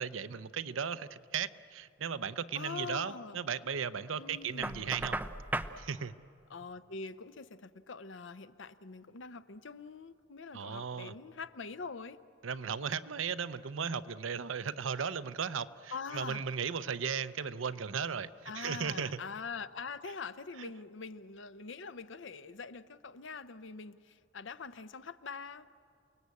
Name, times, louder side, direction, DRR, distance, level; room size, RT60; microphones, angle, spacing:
voice 1, 0.0-5.2 5.8-6.1 10.5-11.1 12.4-19.2 20.6-20.7, right 6 dB, 80° right, 14 dB, 0.7 m, -36 dB
voice 2, 2.5-3.4 4.2-5.0 6.5-12.2 15.9-16.4 18.5-25.7, left 5 dB, 70° left, 13 dB, 0.7 m, -44 dB
Knock, 4.6-5.8, right 2 dB, 10° right, 0.5 m, -36 dB
29.0 x 19.0 x 8.3 m, 2.5 s
head